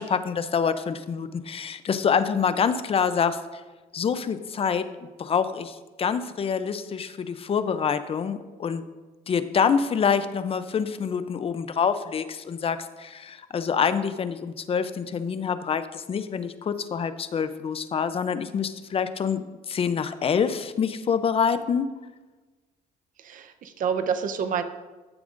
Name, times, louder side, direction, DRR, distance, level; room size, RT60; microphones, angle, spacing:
voice 1, 0.0-3.4 3.9-8.8 9.3-21.9, left 6 dB, 35° left, 12 dB, 0.6 m, -26 dB
voice 2, 23.2-24.6, right 7 dB, 50° right, 8 dB, 0.8 m, -28 dB
14.0 x 7.1 x 2.6 m, 1.2 s
cardioid pair, 110°, 17 cm